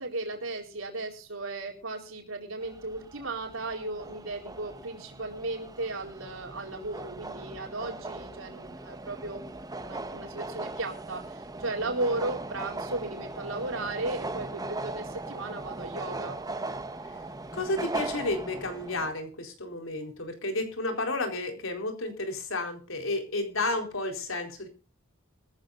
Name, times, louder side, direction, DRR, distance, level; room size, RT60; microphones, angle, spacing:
voice 1, 0.0-9.4 9.7-16.4, right 2 dB, 85° right, 2 dB, 4.2 m, -35 dB
sound 1, 2.6-19.1, right 2 dB, 20° right, 1.0 m, -39 dB
voice 2, 17.5-24.7, left 2 dB, 80° left, 5 dB, 4.2 m, -32 dB
22.5 x 14.5 x 2.6 m, 0.33 s
head